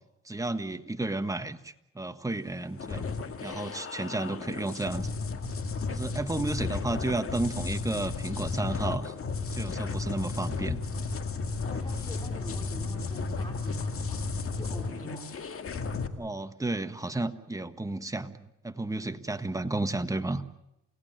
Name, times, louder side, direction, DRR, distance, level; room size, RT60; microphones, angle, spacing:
voice 1, 0.2-3.1 3.4-5.1 5.9-9.1 9.5-10.8 16.2-20.4, right 2 dB, 10° right, 9 dB, 1.4 m, -32 dB
sound 1, 2.8-16.1, left 4 dB, 45° left, 2.1 m, -33 dB
voice 2, 11.6-15.4 19.2-19.4 19.6-19.8, left 1 dB, 15° left, 3 dB, 4.9 m, -45 dB
28.5 x 17.5 x 8.9 m, 0.90 s
cardioid pair, 90°, 30 cm